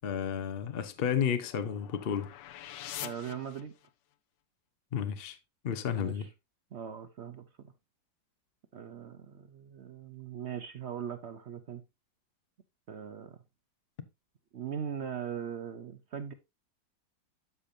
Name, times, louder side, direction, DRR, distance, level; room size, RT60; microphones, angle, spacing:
voice 1, 0.0-2.3 4.9-5.4 5.6-6.3, left 8 dB, 55° left, 0.6 m, -32 dB
sound 1, 0.7-4.1, left 13 dB, 80° left, 1.3 m, -46 dB
voice 2, 3.0-3.7 5.9-6.3 6.7-7.5 8.7-11.8 12.9-13.4 14.5-16.3, right 8 dB, 65° right, 0.6 m, -40 dB
12.5 x 5.2 x 2.7 m
omnidirectional pair, 2.0 m